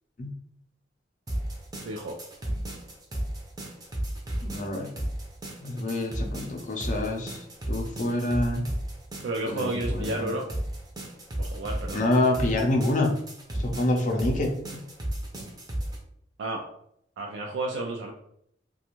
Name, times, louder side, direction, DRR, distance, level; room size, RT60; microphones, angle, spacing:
sound 1, 1.3-16.0, right 1 dB, 20° right, 0.6 m, -34 dB
voice 1, 1.8-2.2 9.2-10.5 11.4-12.1 16.4-16.7 17.2-18.1, right 2 dB, 90° right, 1 dB, 0.4 m, -31 dB
voice 2, 4.4-4.9 5.6-7.4 7.7-8.7 9.5-10.3 11.9-13.1 13.6-14.8, left 1 dB, 45° left, 2 dB, 0.5 m, -27 dB
2.5 x 2.3 x 2.9 m, 0.72 s
head